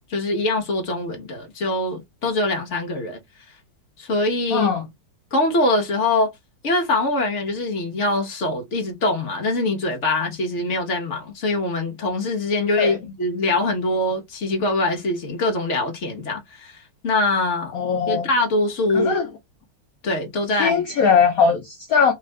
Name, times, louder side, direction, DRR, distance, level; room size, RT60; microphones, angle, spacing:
voice 1, 0.1-3.2 4.0-4.7 5.3-6.3 6.6-16.8 17.0-17.7 18.1-19.2 20.0-20.8, left 2 dB, 45° left, 1.0 m, -23 dB
voice 2, 4.5-4.9 12.8-13.0 17.7-18.3 18.9-19.3 20.5-22.1, left 6 dB, 75° left, 0.8 m, -20 dB
3.6 x 2.4 x 3.1 m
omnidirectional pair, 2.3 m